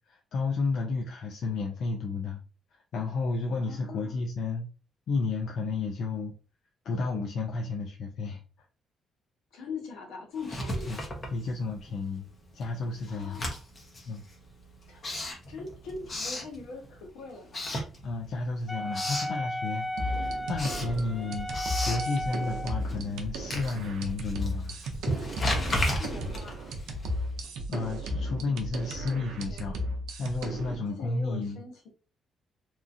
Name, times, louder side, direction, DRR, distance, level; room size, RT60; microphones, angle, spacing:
voice 1, 0.1-2.4 2.9-4.7 5.1-6.4 6.8-8.4 10.9-11.0 11.3-12.3 12.5-13.4 14.1-14.3 18.0-21.5 21.8-24.8 27.7-29.8 30.2-31.6, left 3 dB, 70° left, 1 dB, 0.4 m, -32 dB
voice 2, 3.6-4.2 9.5-11.1 13.1-13.6 14.9-15.0 15.5-17.7 26.0-26.8 28.9-29.8 30.7-31.9, left 4 dB, 90° left, 1 dB, 0.9 m, -42 dB
Writing, 10.4-12.0 12.3-17.1 17.5-18.4 18.7-19.4 19.8-27.5, left 1 dB, 40° left, 0.9 m, -35 dB
Wind instrument woodwind instrument, 18.7-22.9, left 1 dB, 5° left, 0.4 m, -35 dB
sound 1, 20.0-30.8, equal, 85° right, 0.5 m, -35 dB
2.9 x 2.4 x 2.5 m, 0.35 s
cardioid pair, 90°, 0 cm